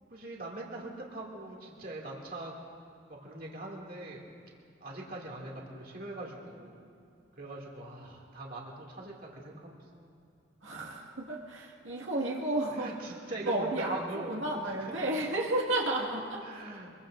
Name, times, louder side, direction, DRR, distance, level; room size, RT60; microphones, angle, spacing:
voice 1, 0.1-2.5 3.1-4.2 4.8-6.8 7.3-10.0 12.7-15.1 16.4-16.9, right 2 dB, 45° right, -2 dB, 2.4 m, -42 dB
voice 2, 10.6-12.9 13.5-14.0 14.3-16.4, right 1 dB, 80° right, -3 dB, 2.0 m, -32 dB
25.0 x 22.0 x 2.6 m, 2.5 s
head